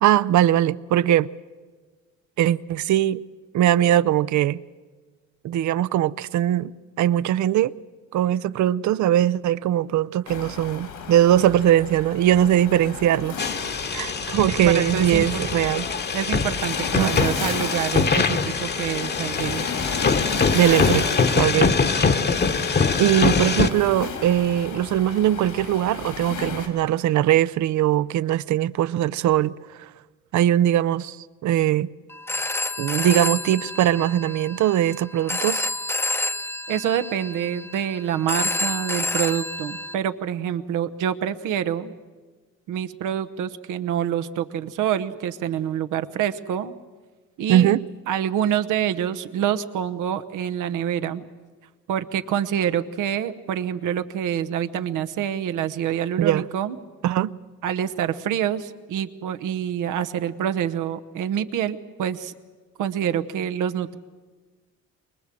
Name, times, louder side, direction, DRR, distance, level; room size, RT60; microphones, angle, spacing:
voice 1, 0.0-1.3 2.4-3.2 3.5-4.6 5.4-6.7 7.0-7.7 8.1-13.4 13.9-15.9 17.0-17.2 20.5-21.1 21.3-21.7 23.0-29.5 29.8-29.9 30.3-31.9 32.8-35.7 47.5-47.8 56.2-56.4 57.0-57.4, right 12 dB, 70° right, 0.6 m, -20 dB
Waves surf, 10.3-26.7, left 5 dB, 85° left, 3.9 m, -34 dB
sound 1, 13.4-23.7, left 5 dB, 35° left, 1.1 m, -23 dB
voice 2, 14.7-15.3 15.5-15.6 16.1-19.7 21.5-21.7 36.7-41.9 42.7-46.7 47.4-47.7 48.1-51.3 51.9-56.8 57.6-62.3 62.8-64.0, right 9 dB, 85° right, 1.0 m, -26 dB
Telephone, 32.1-39.9, left 2 dB, 10° left, 0.7 m, -29 dB
23.5 x 21.0 x 7.6 m
cardioid pair, 90°, 30 cm